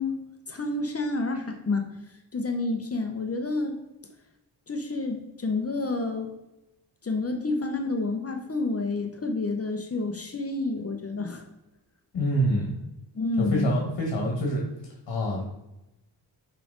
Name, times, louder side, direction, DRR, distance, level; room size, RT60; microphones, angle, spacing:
voice 1, 0.0-1.9 2.3-3.8 4.7-6.3 7.0-11.4 13.1-13.7, left 3 dB, 35° left, 5 dB, 0.8 m, -29 dB
voice 2, 12.1-12.7 13.4-14.6 15.1-15.4, equal, 65° left, 0 dB, 1.5 m, -26 dB
5.7 x 5.0 x 3.9 m, 0.93 s
wide cardioid pair, 110°, 43 cm